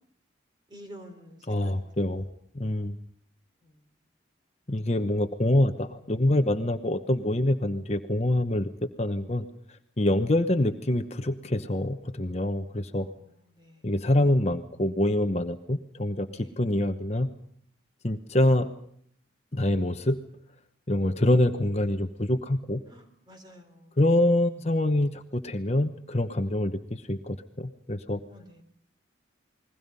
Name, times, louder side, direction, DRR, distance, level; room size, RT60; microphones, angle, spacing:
voice 1, 0.7-1.8 2.6-2.7 3.6-3.8 12.9-13.1 13.5-13.9 16.2-16.5 22.9-24.0 28.3-28.6, equal, 25° right, 6 dB, 3.6 m, -50 dB
voice 2, 1.5-2.2 2.5-3.0 4.7-8.7 9.0-9.5 10.0-13.1 13.8-17.3 18.0-18.7 19.5-20.2 20.9-22.8 24.0-28.2, left 1 dB, 35° left, 8 dB, 1.0 m, -25 dB
29.0 x 21.5 x 5.5 m, 0.64 s
head